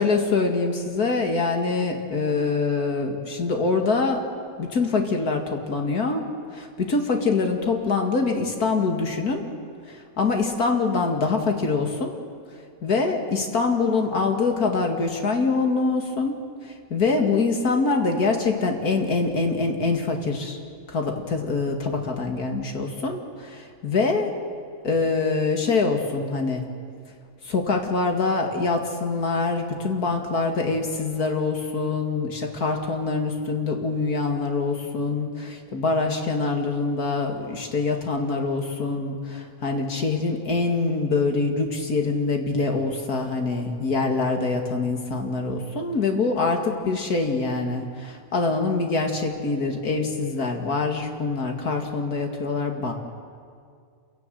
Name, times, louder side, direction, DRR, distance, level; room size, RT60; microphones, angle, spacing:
voice 1, 0.0-4.2 4.6-6.3 6.5-9.5 9.9-12.1 12.8-16.4 16.6-20.6 20.9-24.3 24.8-26.6 27.4-52.9, left 3 dB, 75° left, 3 dB, 2.6 m, -24 dB
27.5 x 17.0 x 7.8 m, 2.2 s
omnidirectional pair, 1.6 m